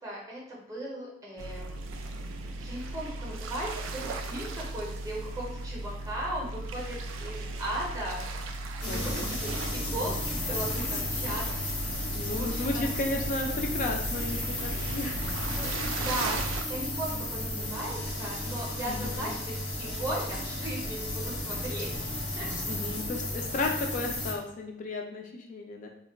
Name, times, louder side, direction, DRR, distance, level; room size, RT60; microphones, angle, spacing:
voice 1, 0.0-1.9 2.6-8.3 8.8-11.6 12.3-12.9 15.6-15.7 16.0-22.1 22.4-22.5, right 1 dB, 15° right, -4 dB, 0.6 m, -37 dB
sound 1, 1.4-16.6, right 2 dB, 90° right, 0.3 m, -37 dB
sound 2, 8.8-24.3, left 1 dB, 90° left, 0.9 m, -34 dB
voice 2, 8.8-9.3 12.0-15.4 15.7-16.1 18.9-19.3 22.7-25.9, left 2 dB, 40° left, 2 dB, 0.3 m, -34 dB
2.2 x 2.1 x 3.3 m, 0.77 s
head